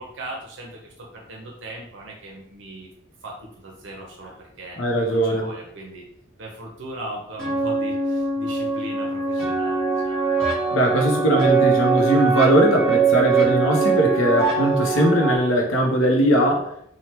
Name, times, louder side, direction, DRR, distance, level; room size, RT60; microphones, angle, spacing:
voice 1, 0.0-2.9 3.2-4.8 5.1-6.1 6.4-10.2, right 1 dB, 60° right, -1 dB, 0.5 m, -38 dB
voice 2, 4.8-5.5 10.7-16.7, equal, 75° left, 1 dB, 0.6 m, -20 dB
sound 1, 7.4-15.4, right 5 dB, 5° left, 0.9 m, -22 dB
3.2 x 2.0 x 2.8 m, 0.73 s
head